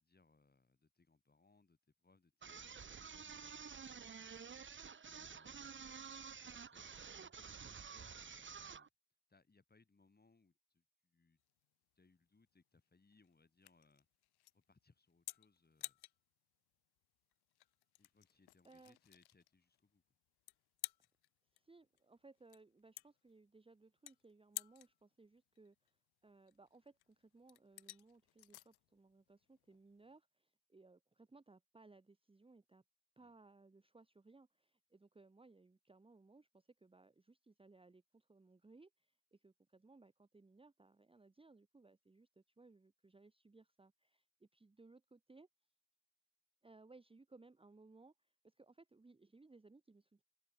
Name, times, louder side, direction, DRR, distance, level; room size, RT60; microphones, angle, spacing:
voice 1, 0.0-8.9 9.3-11.4 11.9-14.1 14.5-16.0 18.0-20.0 33.2-33.3, left 3 dB, 25° left, 6.7 m, -72 dB
sound 1, 2.4-8.9, right 6 dB, 30° right, 1.0 m, -51 dB
sound 2, 11.4-30.2, left 17 dB, 85° left, 0.7 m, -55 dB
voice 2, 18.6-19.0 21.5-26.0 26.2-32.8 33.2-45.5 46.6-50.2, right 3 dB, 15° right, 1.1 m, -64 dB
cardioid pair, 95°, 37 cm